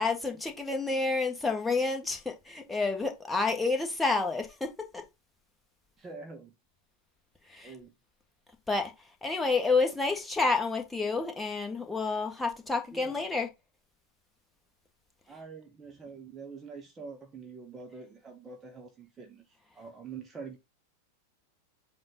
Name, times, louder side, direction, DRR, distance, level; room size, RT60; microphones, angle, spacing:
voice 1, 0.0-5.0 7.5-7.7 8.7-8.9 9.2-13.5, left 3 dB, 10° left, 1.6 m, -29 dB
voice 2, 6.0-6.5 7.6-7.9 12.9-13.2 15.3-20.6, right 4 dB, 20° right, 1.0 m, -45 dB
7.8 x 2.7 x 5.3 m
figure-of-eight pair, 90°, 0 cm